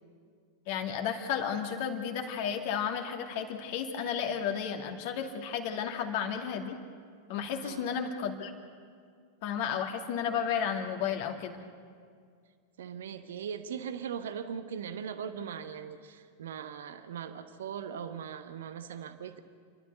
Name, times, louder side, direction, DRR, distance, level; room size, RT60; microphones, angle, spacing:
voice 1, 0.7-6.8 7.3-8.5 9.4-11.6, left 7 dB, 50° left, 4 dB, 2.3 m, -33 dB
voice 2, 12.8-19.4, right 7 dB, 60° right, 9 dB, 1.1 m, -40 dB
29.5 x 12.5 x 8.0 m, 2.1 s
figure-of-eight pair, 90°, 0 cm